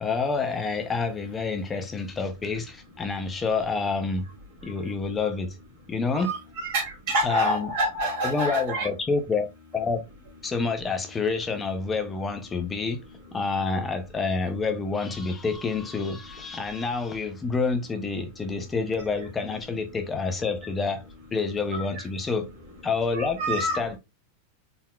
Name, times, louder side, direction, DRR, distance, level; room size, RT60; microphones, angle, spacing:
voice 1, 0.0-4.3 4.6-5.6 5.9-6.3 7.2-7.7 8.2-10.0 10.4-13.0 13.3-21.0 21.3-22.5 22.8-24.0, left 4 dB, 10° left, 0.4 m, -28 dB
voice 2, 6.2-8.9 21.7-21.8 23.1-23.8, right 1 dB, 50° right, 2.3 m, -27 dB
4.2 x 3.9 x 2.2 m
supercardioid pair, 170°, 0 cm